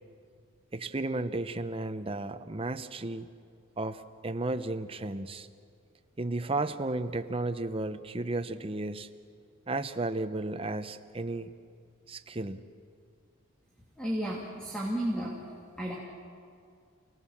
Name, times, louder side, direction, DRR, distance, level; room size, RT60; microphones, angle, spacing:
voice 1, 0.7-3.3 3.8-5.5 6.2-9.1 9.7-11.5 12.1-12.6, right 2 dB, 25° right, 9 dB, 0.8 m, -33 dB
voice 2, 14.0-15.4 15.8-16.0, right 1 dB, 5° left, -3 dB, 2.5 m, -32 dB
29.0 x 18.5 x 7.3 m, 2.3 s
head